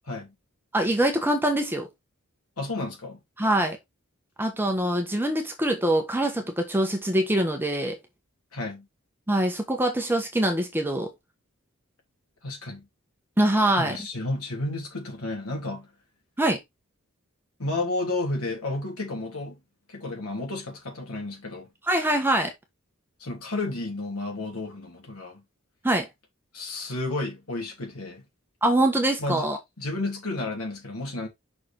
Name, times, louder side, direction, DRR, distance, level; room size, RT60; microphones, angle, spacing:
voice 1, 0.7-1.9 3.4-3.8 4.4-8.0 9.3-11.1 13.4-14.0 16.4-16.6 21.9-22.5 25.8-26.1 28.6-29.6, right 1 dB, 10° right, 1.2 m, -24 dB
voice 2, 2.6-3.2 8.5-8.9 12.4-12.9 13.8-15.9 17.6-19.6 19.9-21.7 23.2-25.4 26.5-28.2 29.2-29.5 29.8-31.3, left 2 dB, 80° left, 3.1 m, -32 dB
6.1 x 4.8 x 3.8 m
head